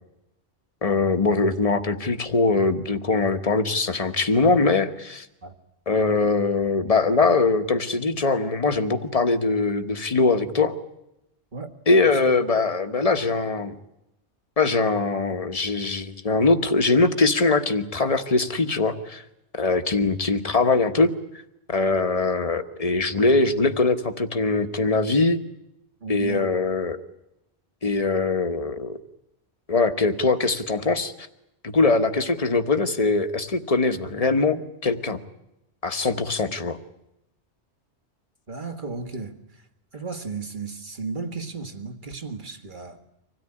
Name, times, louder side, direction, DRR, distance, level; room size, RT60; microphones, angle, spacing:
voice 1, 0.8-5.3 5.9-10.7 11.9-13.7 14.6-19.2 19.5-21.1 21.7-25.4 26.1-27.0 27.8-29.0 29.7-31.1 31.6-35.2 35.8-36.8, left 3 dB, 35° left, 8 dB, 1.3 m, -22 dB
voice 2, 26.0-26.5 38.5-39.6 39.9-43.0, right 4 dB, 45° right, 6 dB, 1.9 m, -34 dB
25.0 x 17.0 x 9.9 m, 0.87 s
omnidirectional pair, 1.2 m